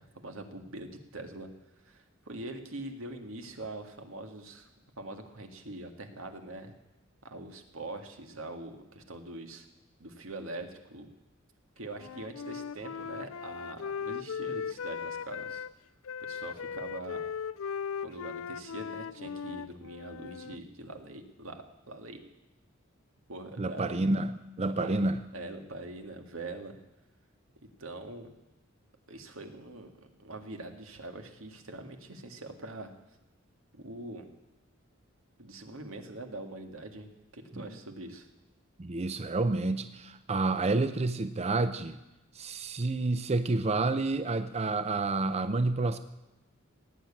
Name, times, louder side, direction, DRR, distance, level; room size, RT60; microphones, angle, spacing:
voice 1, 0.0-1.5 1.8-4.7 5.0-6.7 7.2-9.7 10.0-11.1 11.8-15.7 16.3-17.2 18.0-22.2 23.3-23.9 24.6-26.8 27.8-28.3 29.1-29.9 30.2-32.9 33.7-34.3 35.4-37.1 37.3-38.3, right 2 dB, 90° right, 5 dB, 2.0 m, -43 dB
Wind instrument woodwind instrument, 11.9-15.7 16.1-20.6, left 6 dB, 85° left, 0.5 m, -38 dB
voice 2, 23.6-25.2 37.5-37.7 38.8-42.0 42.3-46.0, right 2 dB, 30° right, 11 dB, 0.5 m, -29 dB
17.5 x 9.2 x 8.6 m, 1.0 s
head